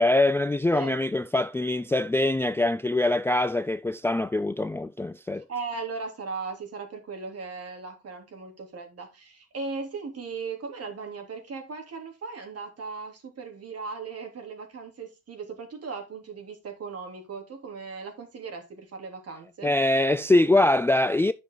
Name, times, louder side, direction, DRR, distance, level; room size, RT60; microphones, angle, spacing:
voice 1, 0.0-5.4 19.6-21.3, left 2 dB, 10° left, 0.4 m, -23 dB
voice 2, 5.5-19.7, right 4 dB, 55° right, 3.3 m, -37 dB
10.0 x 6.2 x 3.9 m
cardioid pair, 90°, 30 cm